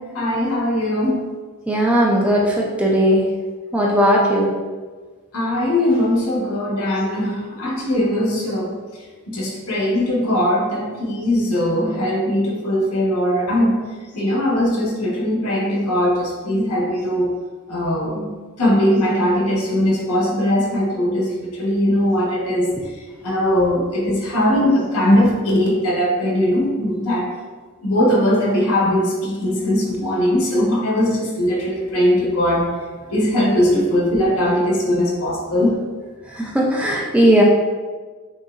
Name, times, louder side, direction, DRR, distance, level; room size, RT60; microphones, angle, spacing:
voice 1, 0.1-1.3 5.3-8.7 9.3-13.8 14.1-17.3 17.7-18.3 18.6-22.7 23.2-27.3 27.8-32.7 33.1-35.8, left 1 dB, 75° left, -3 dB, 1.2 m, -20 dB
voice 2, 1.7-3.2 3.7-4.5 36.4-37.4, equal, 5° right, -2 dB, 0.4 m, -17 dB
6.3 x 2.9 x 2.4 m, 1.4 s
head